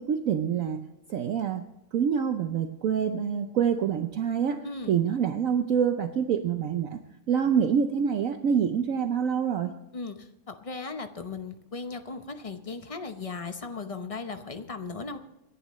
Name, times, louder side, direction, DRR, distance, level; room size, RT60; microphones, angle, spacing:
voice 1, 0.0-1.6 1.9-7.0 7.3-9.7, right 7 dB, 60° right, 7 dB, 1.0 m, -26 dB
voice 2, 4.6-5.0 9.9-15.2, left 4 dB, 30° left, 8 dB, 0.7 m, -37 dB
26.5 x 11.0 x 3.1 m, 0.94 s
omnidirectional pair, 1.8 m